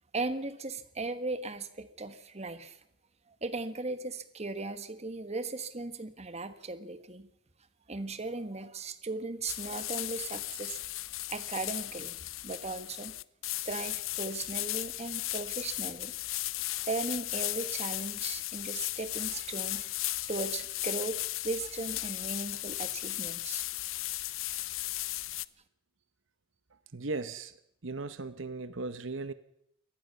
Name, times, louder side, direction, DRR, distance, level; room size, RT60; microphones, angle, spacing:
voice 1, 0.1-2.8 3.4-7.3 7.9-10.8 11.3-12.2 12.4-13.1 13.6-16.1 16.9-19.9 20.3-21.2 21.4-23.6, right 3 dB, 35° right, 1.4 m, -37 dB
sound 1, 9.5-25.5, left 17 dB, 85° left, 0.7 m, -36 dB
voice 2, 26.7-29.3, right 3 dB, 70° right, 1.0 m, -38 dB
23.5 x 18.5 x 6.9 m
head